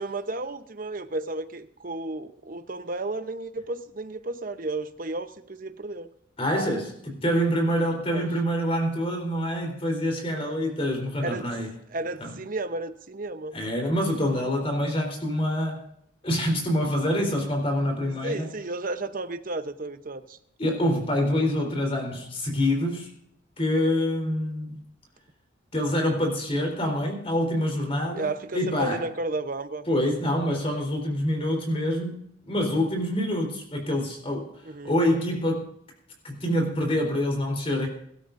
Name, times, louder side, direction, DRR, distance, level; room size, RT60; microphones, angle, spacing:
voice 1, 0.0-6.1 8.1-8.3 11.2-11.5 11.9-13.6 18.2-20.4 28.1-29.8 34.6-34.9, right 2 dB, 45° right, 0.9 m, -33 dB
voice 2, 6.4-11.7 12.2-12.3 13.5-15.8 16.2-18.5 20.6-23.1 23.6-24.8 25.7-29.0 29.9-34.5 34.8-35.7 36.2-37.9, equal, 30° left, 3.9 m, -26 dB
22.5 x 12.5 x 2.6 m
head